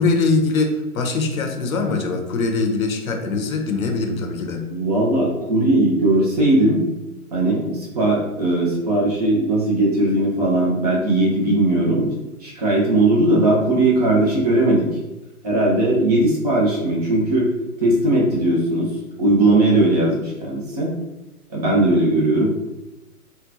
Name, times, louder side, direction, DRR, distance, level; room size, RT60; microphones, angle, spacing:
voice 1, 0.0-4.6, left 3 dB, 60° left, 4 dB, 0.7 m, -22 dB
voice 2, 4.7-6.9 7.3-12.1 12.4-14.9 15.4-17.5 17.8-18.9 19.2-20.9 21.5-22.5, right 2 dB, 25° right, -3 dB, 0.6 m, -18 dB
3.6 x 2.2 x 2.7 m, 0.99 s
figure-of-eight pair, 125°, 46 cm